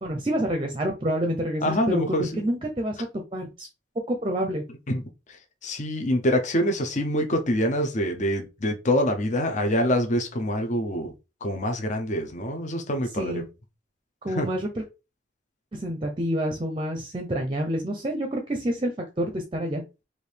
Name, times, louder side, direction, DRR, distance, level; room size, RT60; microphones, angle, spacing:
voice 1, 0.0-3.0 3.3-3.7 4.1-4.6 13.2-13.5 14.2-14.8 15.7-18.9 19.2-19.8, equal, 25° right, 0.6 m, -28 dB
voice 2, 1.6-2.3 4.9-5.0 5.6-11.1 11.4-13.4 14.3-14.5, equal, 40° left, 0.7 m, -25 dB
4.7 x 2.7 x 3.3 m
head